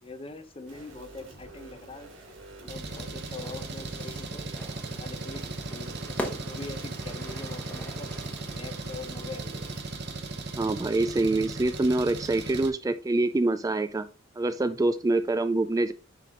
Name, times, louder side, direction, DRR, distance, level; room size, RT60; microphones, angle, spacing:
voice 1, 0.0-2.1 2.6-4.5 4.9-6.1 6.4-8.1 8.4-9.6, left 3 dB, 30° left, 8 dB, 0.9 m, -43 dB
sound 1, 0.7-9.8, right 2 dB, 75° right, 2.2 m, -48 dB
Engine, 2.7-12.7, right 3 dB, 60° right, 1.1 m, -37 dB
Fire / Fireworks, 3.4-9.0, equal, 10° left, 1.2 m, -42 dB
voice 2, 10.6-14.1 14.4-15.9, right 2 dB, 20° right, 10 dB, 0.3 m, -25 dB
9.7 x 3.4 x 3.7 m, 0.34 s
head